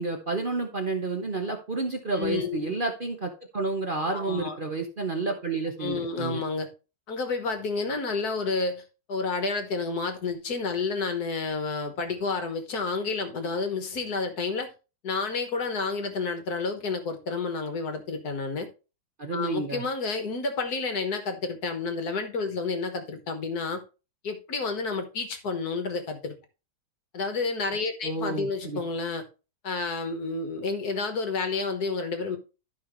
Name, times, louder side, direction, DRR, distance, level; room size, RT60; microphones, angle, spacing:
voice 1, 0.0-6.4 19.2-19.8 28.0-28.8, right 3 dB, 45° right, 0.6 m, -30 dB
voice 2, 2.1-2.7 4.1-4.6 5.8-6.7 7.1-8.8 9.1-14.7 15.0-18.7 19.3-23.8 24.2-26.4 27.1-29.2 29.6-32.4, left 4 dB, 50° left, 1.6 m, -30 dB
12.0 x 5.4 x 3.1 m
omnidirectional pair, 2.4 m